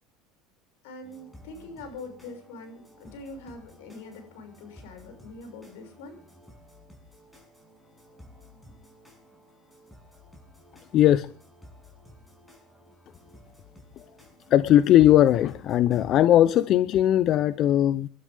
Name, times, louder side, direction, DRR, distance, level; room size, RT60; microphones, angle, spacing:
voice 1, 0.8-6.2, left 2 dB, 85° left, 6 dB, 6.2 m, -43 dB
sound 1, 1.0-16.7, left 1 dB, 10° left, 6.4 m, -53 dB
voice 2, 10.9-11.3 14.5-18.1, left 12 dB, 50° left, 15 dB, 0.7 m, -19 dB
27.0 x 12.5 x 3.6 m, 0.41 s
supercardioid pair, 110°, 0 cm